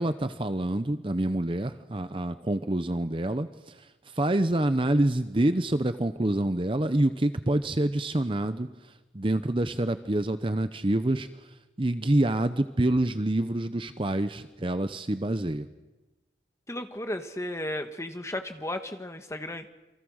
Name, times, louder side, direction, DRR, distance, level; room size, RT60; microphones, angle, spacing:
voice 1, 0.0-3.9 4.1-11.3 11.8-15.7, right 1 dB, 25° right, 11 dB, 0.7 m, -27 dB
voice 2, 16.7-19.7, left 1 dB, 15° left, 7 dB, 1.5 m, -34 dB
28.5 x 24.5 x 6.4 m, 1.1 s
head